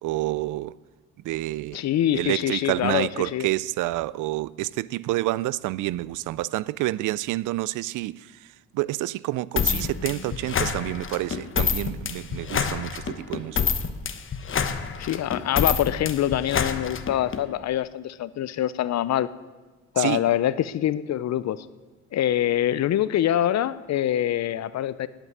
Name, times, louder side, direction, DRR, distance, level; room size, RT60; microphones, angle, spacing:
voice 1, 0.0-0.7 1.2-1.8 2.1-13.6 20.0-20.2, right 17 dB, 85° right, 0.5 m, -28 dB
voice 2, 1.7-3.5 15.0-19.3 19.9-21.7 22.1-25.1, left 11 dB, 60° left, 0.6 m, -25 dB
sound 1, 9.6-17.4, left 6 dB, 40° left, 1.1 m, -27 dB
10.5 x 8.9 x 9.3 m
cardioid pair, 90°, 30 cm